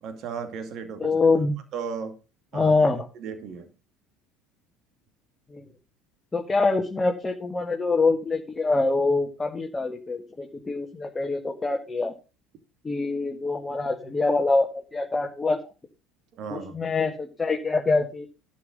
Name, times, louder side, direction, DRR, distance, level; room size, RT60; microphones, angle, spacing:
voice 1, 0.0-1.2 1.7-2.2 2.5-2.9 3.1-3.7 16.4-16.9, right 6 dB, 50° right, 7 dB, 2.5 m, -35 dB
voice 2, 1.0-1.6 2.5-3.1 5.5-5.6 6.3-12.1 12.8-14.7 14.9-15.6 16.5-18.3, left 3 dB, 20° left, 2 dB, 1.9 m, -24 dB
11.5 x 5.8 x 6.7 m, 0.31 s
hypercardioid pair, 70°, 0 cm